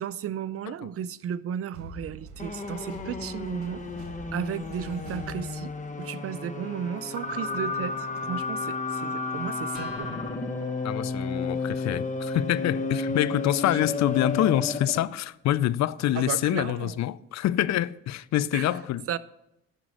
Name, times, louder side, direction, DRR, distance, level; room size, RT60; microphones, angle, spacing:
voice 1, 0.0-3.8 4.3-5.7 6.0-10.3 13.3-13.9 16.1-17.0 18.5-18.7 19.1-19.2, right 8 dB, 50° right, 0.5 m, -34 dB
sound 1, 1.7-6.2, right 2 dB, 80° right, 1.4 m, -44 dB
sound 2, 2.4-15.1, left 3 dB, 25° left, 1.2 m, -32 dB
Acoustic guitar, 9.7-16.6, left 1 dB, ahead, 4.1 m, -54 dB
voice 2, 10.8-19.0, left 13 dB, 65° left, 0.4 m, -26 dB
11.0 x 5.1 x 6.1 m
cardioid pair, 85°, 29 cm